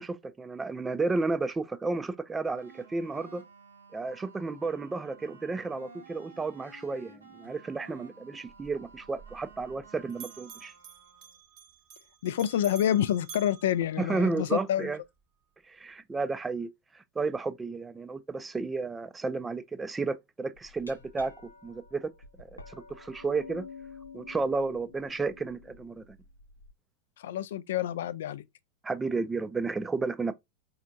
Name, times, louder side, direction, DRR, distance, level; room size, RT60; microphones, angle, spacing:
voice 1, 0.0-3.4 3.9-10.7 14.1-15.0 15.7-16.7 17.2-21.3 21.6-22.1 22.4-23.6 24.1-26.0 28.8-30.3, right 3 dB, 15° right, 0.4 m, -32 dB
sound 1, 2.6-11.4, right 4 dB, 75° right, 1.0 m, -53 dB
Bell, 8.5-9.8 10.1-14.6, right 9 dB, 40° right, 0.8 m, -50 dB
voice 2, 12.2-14.9 27.2-28.4, left 11 dB, 60° left, 0.3 m, -28 dB
Glass, 20.6-26.7, left 4 dB, 80° left, 0.7 m, -49 dB
4.2 x 2.7 x 2.5 m
figure-of-eight pair, 90°, 0 cm